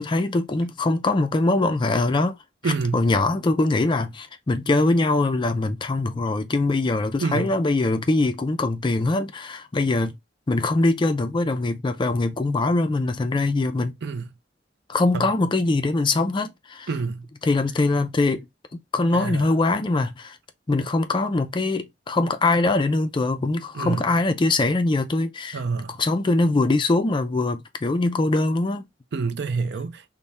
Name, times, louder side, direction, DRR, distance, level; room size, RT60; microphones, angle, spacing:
voice 1, 0.0-2.4 2.6-10.2 10.5-14.0 14.9-16.9 17.4-18.5 18.7-20.4 20.7-25.6 25.9-28.9, left 2 dB, 25° left, 0.4 m, -22 dB
voice 2, 2.6-3.1 7.2-7.5 14.0-14.3 15.1-15.3 16.9-17.3 19.1-19.5 23.7-24.1 25.5-26.0 29.1-30.0, right 4 dB, 65° right, 0.4 m, -27 dB
3.3 x 2.1 x 4.0 m
head